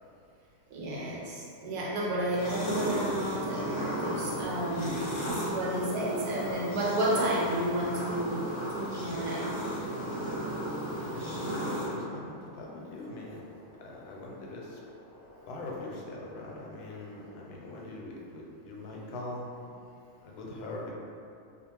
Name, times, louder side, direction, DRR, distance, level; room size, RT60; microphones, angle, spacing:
voice 1, 0.7-9.5, right 1 dB, 90° right, -5 dB, 1.2 m, -32 dB
sound 1, 2.3-11.9, right 1 dB, 30° left, 0.5 m, -35 dB
sound 2, 2.5-17.4, left 1 dB, 65° left, 0.8 m, -49 dB
voice 2, 11.0-13.5 13.8-14.8 15.5-19.7 20.2-20.9, left 2 dB, 90° left, -3 dB, 1.1 m, -42 dB
2.4 x 2.4 x 2.9 m, 2.5 s
omnidirectional pair, 1.6 m